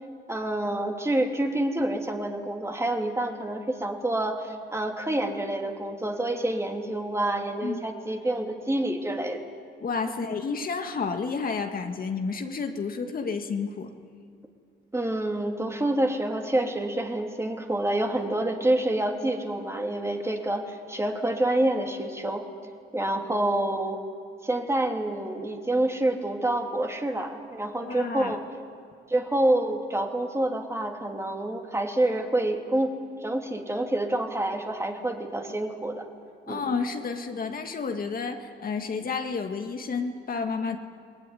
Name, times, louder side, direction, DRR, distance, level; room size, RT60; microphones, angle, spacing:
voice 1, 0.3-9.4 14.9-22.4 22.9-24.0 24.4-28.4 29.1-32.9 33.2-36.0 36.5-36.7, right 1 dB, 15° right, 3 dB, 2.9 m, -27 dB
voice 2, 9.8-13.9 27.8-28.4 36.5-40.8, left 5 dB, 45° left, 5 dB, 1.8 m, -30 dB
24.0 x 20.0 x 9.9 m, 2.3 s
cardioid pair, 90°, 20 cm